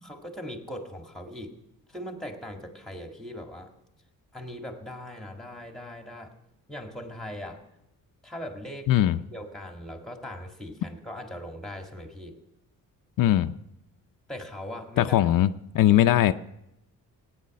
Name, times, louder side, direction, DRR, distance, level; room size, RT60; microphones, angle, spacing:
voice 1, 0.0-1.5 1.9-3.7 4.3-6.3 6.7-7.6 8.2-8.9 9.3-12.4 14.3-15.3, equal, ahead, 4 dB, 1.9 m, -40 dB
voice 2, 8.9-9.2 13.2-13.5 15.0-15.5 15.7-16.3, left 12 dB, 70° left, 9 dB, 0.6 m, -20 dB
18.0 x 9.5 x 6.4 m, 0.87 s
cardioid pair, 150°, 34 cm